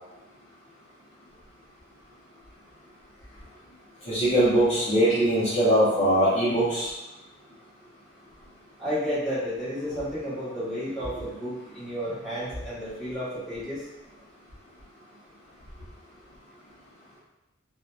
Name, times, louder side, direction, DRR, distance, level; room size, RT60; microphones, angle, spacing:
voice 1, 4.1-6.9, right 1 dB, 35° left, -11 dB, 0.7 m, -21 dB
voice 2, 8.8-13.8, equal, ahead, -14 dB, 1.1 m, -32 dB
2.6 x 2.1 x 2.3 m, 0.99 s
head